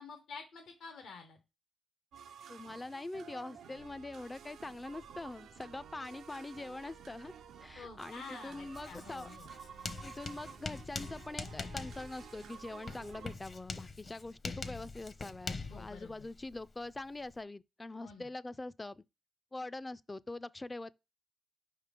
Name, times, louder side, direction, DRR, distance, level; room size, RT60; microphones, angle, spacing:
voice 1, 0.0-1.4 7.8-9.5 15.7-16.3 18.0-18.3, left 5 dB, 85° left, 1.0 m, -49 dB
sound 1, 2.1-13.3, right 7 dB, 85° right, 0.5 m, -52 dB
voice 2, 2.5-9.3 10.0-19.0 19.5-20.9, left 2 dB, 25° left, 0.3 m, -44 dB
sound 2, 3.8-13.4, right 6 dB, 70° right, 0.8 m, -64 dB
Writing, 8.7-17.4, left 3 dB, 50° left, 0.7 m, -44 dB
5.2 x 3.7 x 4.9 m
cardioid pair, 65°, 0 cm